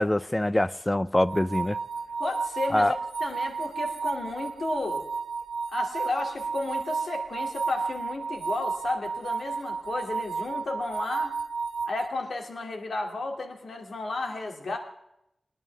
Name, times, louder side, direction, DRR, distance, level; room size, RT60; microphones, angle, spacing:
voice 1, 0.0-1.8 2.7-3.0, left 1 dB, 20° left, 0.5 m, -24 dB
sound 1, 1.2-12.1, right 5 dB, 75° right, 1.7 m, -32 dB
voice 2, 2.2-2.9 3.2-5.0 5.7-11.3 11.9-14.8, left 2 dB, 75° left, 2.6 m, -33 dB
22.5 x 11.0 x 3.5 m
wide cardioid pair, 70°, 0 cm